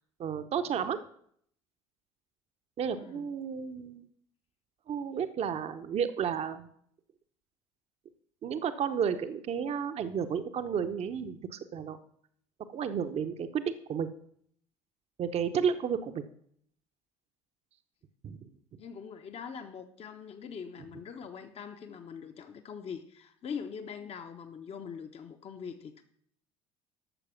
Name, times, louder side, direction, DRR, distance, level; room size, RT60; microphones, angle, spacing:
voice 1, 0.2-1.0 2.8-4.1 4.9-6.7 8.4-12.0 12.7-14.1 15.2-16.2 18.2-18.5, right 7 dB, 40° right, 9 dB, 0.8 m, -32 dB
voice 2, 2.9-3.3 18.8-26.0, left 6 dB, 40° left, 6 dB, 0.9 m, -43 dB
12.5 x 6.7 x 5.8 m, 0.66 s
figure-of-eight pair, 60°, 16 cm